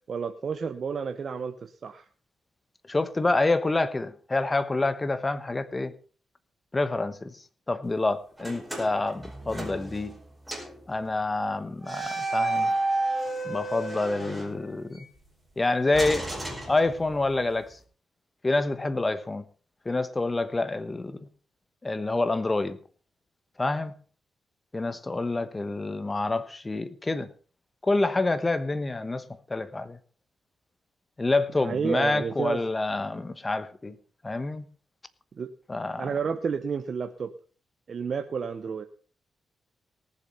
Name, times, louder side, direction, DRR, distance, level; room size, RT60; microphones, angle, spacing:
voice 1, 0.1-2.0 31.6-32.6 35.4-35.5 36.0-37.3 37.9-38.9, right 6 dB, 50° right, 0.9 m, -31 dB
voice 2, 2.9-5.9 6.7-7.4 7.7-10.1 10.9-12.7 13.4-15.0 15.6-16.3 16.7-17.8 18.4-19.4 19.8-21.2 21.8-22.8 23.6-23.9 24.7-27.3 27.8-29.2 29.5-30.0 31.2-33.9 34.2-34.7 35.7-36.1, left 2 dB, 20° left, 1.1 m, -27 dB
sound 1, 8.4-10.2 10.5-10.8 11.8-15.0 15.9-17.3, right 2 dB, 5° right, 4.9 m, -32 dB
18.5 x 7.2 x 5.6 m
cardioid pair, 105°, 0 cm